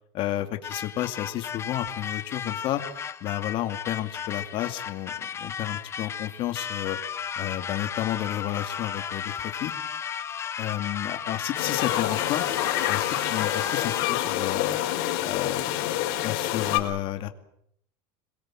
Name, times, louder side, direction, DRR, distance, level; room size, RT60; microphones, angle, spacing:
voice 1, 0.1-2.8 3.2-7.0 7.4-9.7 10.6-12.4 12.9-14.8 15.2-15.9 16.2-17.3, left 13 dB, 40° left, 7 dB, 2.4 m, -31 dB
sound 1, 0.6-14.3, left 8 dB, 20° left, 1.0 m, -34 dB
sound 2, 11.5-16.8, left 14 dB, 65° left, 5.1 m, -27 dB
26.5 x 22.5 x 7.6 m, 0.73 s
supercardioid pair, 155°, 13 cm